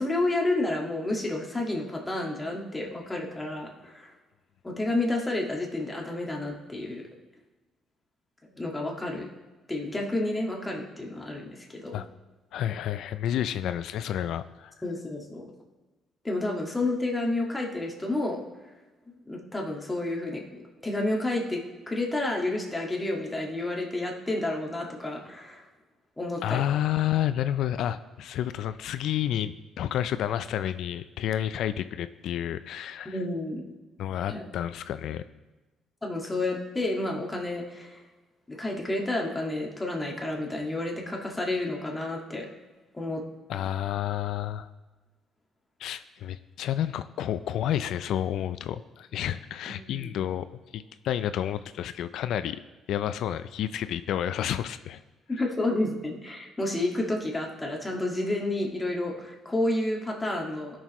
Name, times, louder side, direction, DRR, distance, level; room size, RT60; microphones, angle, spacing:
voice 1, 0.0-4.1 4.6-7.0 8.4-9.3 9.7-12.0 14.8-15.5 16.2-18.4 19.2-25.7 26.2-26.6 33.0-33.6 34.3-34.4 36.0-38.0 38.5-42.5 42.9-43.2 49.7-50.1 55.3-60.8, left 2 dB, 10° left, -1 dB, 1.7 m, -30 dB
voice 2, 12.5-14.7 26.4-33.1 34.0-35.2 43.5-44.7 45.8-50.5 50.7-52.6 52.9-55.0, left 11 dB, 75° left, 12 dB, 0.4 m, -30 dB
17.0 x 6.3 x 3.1 m, 1.2 s
cardioid pair, 115°, 0 cm